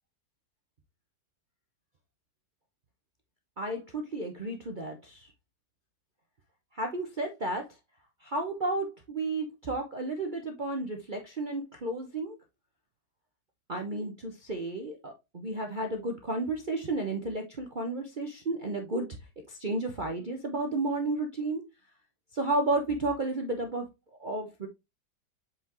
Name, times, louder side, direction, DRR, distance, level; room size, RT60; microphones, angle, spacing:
voice 1, 3.6-5.3 6.7-7.7 8.2-12.3 13.7-19.2 19.5-21.6 22.3-23.9 24.2-24.7, right 2 dB, 35° right, 0.8 m, -32 dB
7.9 x 4.6 x 3.0 m
omnidirectional pair, 1.8 m